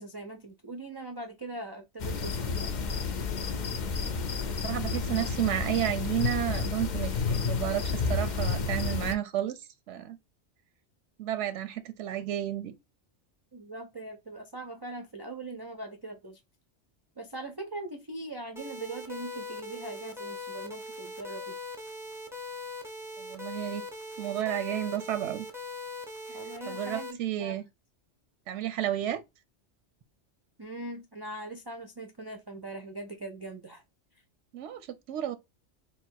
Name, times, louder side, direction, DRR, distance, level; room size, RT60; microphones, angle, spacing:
voice 1, 0.0-2.7 13.5-16.4 17.2-21.6 26.3-27.6 30.6-33.8, right 2 dB, 40° right, 0.3 m, -41 dB
sound 1, 2.0-9.1, left 4 dB, 50° left, 0.6 m, -30 dB
voice 2, 4.4-10.2 11.2-12.7 23.2-23.8 24.2-25.5 26.7-27.6 28.5-29.2 34.5-35.4, right 12 dB, 85° right, 0.9 m, -32 dB
sound 2, 18.6-27.1, left 3 dB, 5° right, 0.7 m, -40 dB
3.5 x 2.3 x 4.4 m
omnidirectional pair, 1.2 m